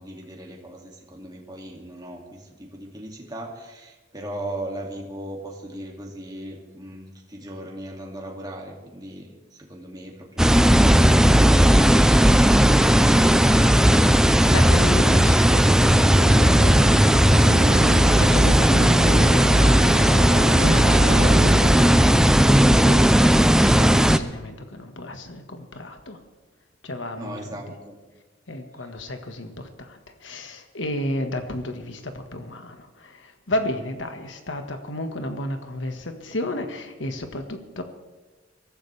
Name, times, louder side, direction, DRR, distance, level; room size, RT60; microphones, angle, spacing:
voice 1, 0.0-14.2 27.1-28.0, right 1 dB, 20° right, 0 dB, 2.4 m, -38 dB
sound 1, 10.4-24.2, equal, 5° right, 0.5 m, -16 dB
voice 2, 14.5-22.0 22.8-23.2 23.6-26.2 26.8-27.6 28.5-37.8, left 1 dB, 70° left, 6 dB, 1.6 m, -32 dB
sound 2, 14.9-23.7, right 2 dB, 65° right, 1.0 m, -31 dB
23.0 x 14.5 x 3.4 m, 1.3 s
head